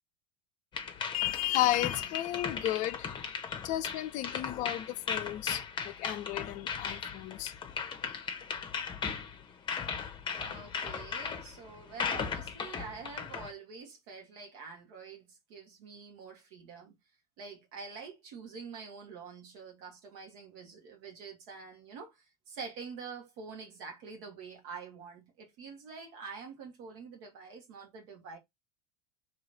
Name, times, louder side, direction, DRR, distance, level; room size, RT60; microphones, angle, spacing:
sound 1, 0.7-13.5, left 6 dB, 25° left, 0.9 m, -37 dB
voice 1, 1.1-7.5, left 14 dB, 40° left, 0.5 m, -33 dB
voice 2, 10.4-16.9 17.4-28.4, right 5 dB, 55° right, 1.6 m, -46 dB
3.1 x 3.0 x 4.0 m
figure-of-eight pair, 80°, 20 cm